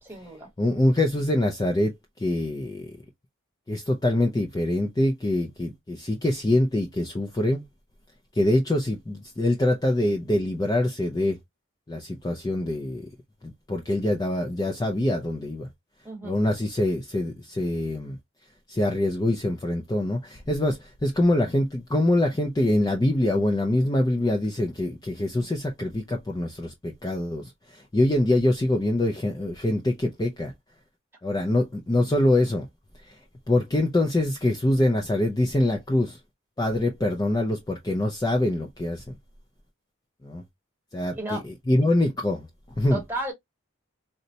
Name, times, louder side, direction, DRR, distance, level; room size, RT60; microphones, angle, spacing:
voice 1, 0.0-0.5 16.0-16.4 41.1-41.5 42.9-43.3, right 1 dB, 10° right, 1.2 m, -33 dB
voice 2, 0.6-2.9 3.7-7.6 8.3-11.4 11.9-13.1 13.7-15.7 16.2-18.2 18.7-30.5 31.2-32.7 33.0-33.2 33.5-36.2 36.6-39.1 40.2-40.4 40.9-41.4 41.7-42.5 42.8-43.0, left 1 dB, 20° left, 0.4 m, -24 dB
3.9 x 2.1 x 2.7 m
head